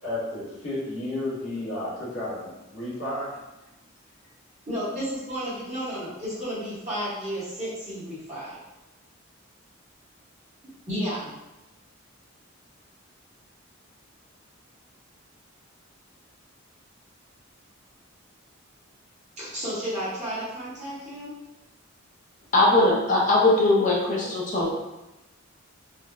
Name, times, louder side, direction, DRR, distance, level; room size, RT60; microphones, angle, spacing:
voice 1, 0.0-3.4, left 1 dB, 75° left, -9 dB, 1.4 m, -32 dB
voice 2, 4.7-8.6 10.9-11.3 19.4-21.3, equal, 35° right, -11 dB, 1.2 m, -32 dB
voice 3, 22.5-24.7, left 2 dB, 35° left, -3 dB, 0.6 m, -20 dB
3.8 x 2.1 x 2.2 m, 0.98 s
head